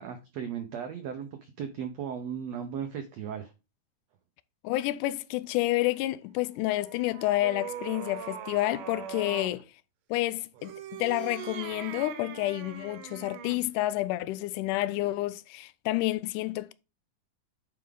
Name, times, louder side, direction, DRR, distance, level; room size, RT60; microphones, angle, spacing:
voice 1, 0.0-3.5, right 8 dB, 90° right, 1.4 m, -36 dB
voice 2, 4.6-9.6 10.1-16.7, left 17 dB, 85° left, 1.8 m, -29 dB
sound 1, 6.6-9.6 10.5-13.7, right 9 dB, 75° right, 2.3 m, -41 dB
9.4 x 4.8 x 3.8 m
omnidirectional pair, 4.2 m